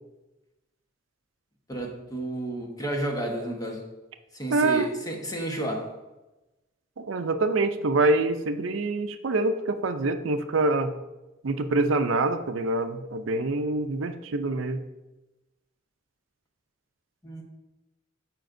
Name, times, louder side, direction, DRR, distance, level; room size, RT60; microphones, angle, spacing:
voice 1, 1.7-3.8 4.3-5.9 17.2-17.4, right 1 dB, 20° left, 1 dB, 1.1 m, -31 dB
voice 2, 4.5-4.9 7.0-10.9 11.4-14.8, right 2 dB, 70° right, 8 dB, 0.5 m, -25 dB
12.5 x 5.1 x 2.6 m, 1.0 s
head